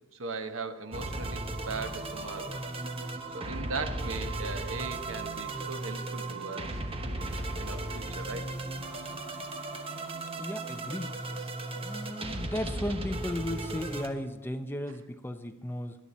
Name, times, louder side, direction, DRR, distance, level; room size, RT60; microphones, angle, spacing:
voice 1, 0.1-2.6 3.3-6.9 7.2-7.3 7.6-8.5 14.9-15.0, right 3 dB, 75° right, 8 dB, 1.0 m, -38 dB
sound 1, 0.9-14.1, right 2 dB, 30° right, 1.1 m, -36 dB
voice 2, 10.4-11.2 11.7-16.0, left 1 dB, 10° left, 7 dB, 0.7 m, -35 dB
17.5 x 11.5 x 4.2 m, 1.2 s
head